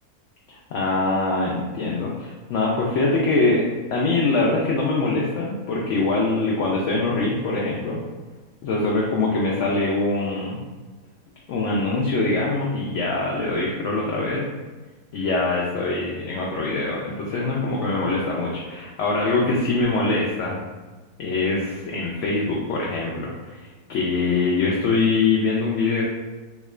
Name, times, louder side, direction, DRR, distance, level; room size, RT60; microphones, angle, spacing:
voice 1, 0.5-3.7 3.9-8.0 8.6-10.6 11.5-14.5 15.1-20.6 21.2-26.0, left 3 dB, 70° left, -3 dB, 0.7 m, -23 dB
3.6 x 2.3 x 3.1 m, 1.3 s
omnidirectional pair, 1.7 m